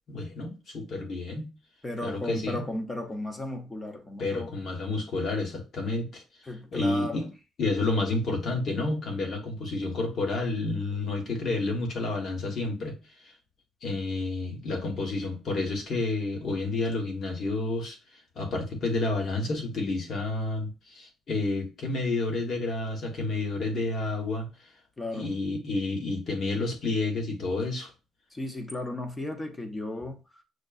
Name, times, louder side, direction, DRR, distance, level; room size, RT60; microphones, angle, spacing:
voice 1, 0.1-1.5 2.0-2.7 4.2-6.2 6.7-7.3 7.6-13.0 13.2-13.3 13.8-18.0 18.3-24.5 25.1-27.9, left 2 dB, 45° left, 1.3 m, -30 dB
voice 2, 1.8-4.5 6.5-7.2 25.0-25.3 28.3-30.2, left 1 dB, 15° left, 0.7 m, -35 dB
6.3 x 2.2 x 2.3 m
cardioid pair, 130°, 0 cm